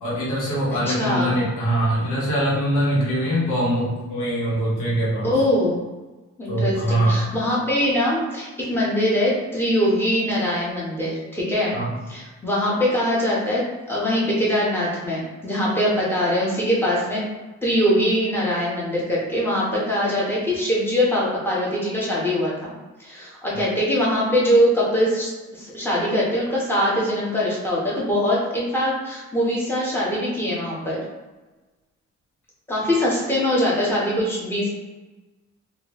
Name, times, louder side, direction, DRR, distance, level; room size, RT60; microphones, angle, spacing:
voice 1, 0.0-5.3 6.5-7.2 11.7-11.9, right 1 dB, 85° left, -6 dB, 1.3 m, -23 dB
voice 2, 0.8-1.4 5.2-5.8 6.4-11.8 12.1-17.2 17.6-22.7 23.0-31.0 32.7-34.7, equal, 5° left, -6 dB, 1.1 m, -22 dB
3.2 x 2.6 x 3.1 m, 1.2 s
cardioid pair, 90°, 30 cm